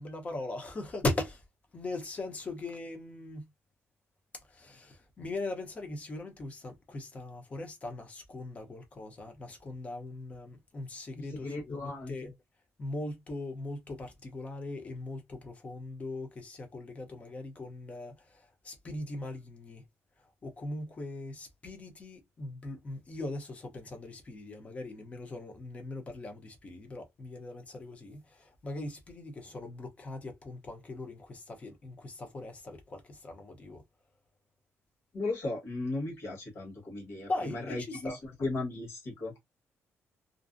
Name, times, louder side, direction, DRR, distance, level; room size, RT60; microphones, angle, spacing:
voice 1, 0.0-1.4 1.7-3.4 4.5-12.3 12.8-18.1 18.6-19.8 20.4-33.8 37.3-38.2, left 2 dB, 25° left, 0.6 m, -40 dB
voice 2, 11.1-12.3 35.1-39.3, left 2 dB, 50° left, 1.2 m, -36 dB
2.5 x 2.0 x 2.5 m
cardioid pair, 160°, 5 cm